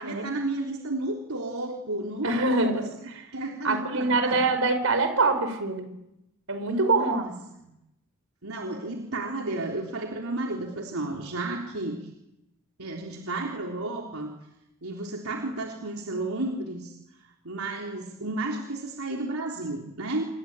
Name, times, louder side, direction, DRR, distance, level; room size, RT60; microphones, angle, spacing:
voice 1, 0.0-2.7 3.3-4.4 6.7-7.3 7.6-7.7 8.4-12.0 12.8-14.3 14.8-17.0 17.4-20.2, right 2 dB, 90° right, 1 dB, 3.7 m, -32 dB
voice 2, 2.2-3.2 3.6-5.9 6.5-7.2, right 3 dB, 70° right, 9 dB, 5.4 m, -25 dB
28.0 x 23.5 x 9.1 m, 0.86 s
head